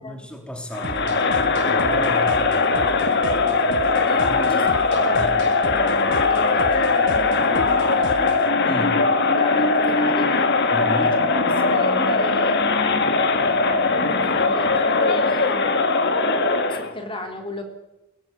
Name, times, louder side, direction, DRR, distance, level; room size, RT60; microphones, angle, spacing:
voice 1, 0.0-3.1 4.3-4.5 5.2-5.3 8.6-9.1 10.7-11.2, equal, 5° left, 3 dB, 3.4 m, -33 dB
Crowd, 0.7-16.9, left 3 dB, 55° left, 2.2 m, -20 dB
sound 1, 0.8-8.5, right 1 dB, 60° right, 1.7 m, -36 dB
voice 2, 4.1-8.3 9.4-10.5 11.3-11.4 11.6-15.7 16.7-17.6, left 1 dB, 25° left, 4 dB, 3.5 m, -35 dB
22.5 x 19.5 x 9.3 m, 0.97 s
head